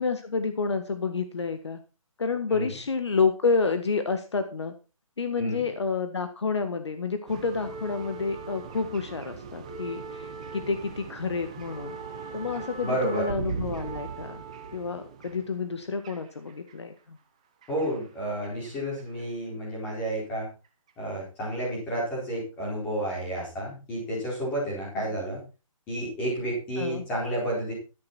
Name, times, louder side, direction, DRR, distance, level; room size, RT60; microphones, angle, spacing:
voice 1, 0.0-1.8 2.2-4.7 5.2-12.0 12.3-14.4 14.7-17.2 24.9-25.0 26.8-27.0, left 4 dB, 50° left, 8 dB, 1.6 m, -29 dB
sound 1, 7.3-16.7 17.6-18.7 19.0-19.2 20.1-20.2, right 5 dB, 10° right, 0.8 m, -39 dB
voice 2, 12.8-13.3 17.7-20.5 21.0-25.4 25.9-27.7, right 1 dB, 10° left, -5 dB, 4.7 m, -31 dB
13.0 x 11.0 x 4.3 m, 0.32 s
hypercardioid pair, 180°, 18 cm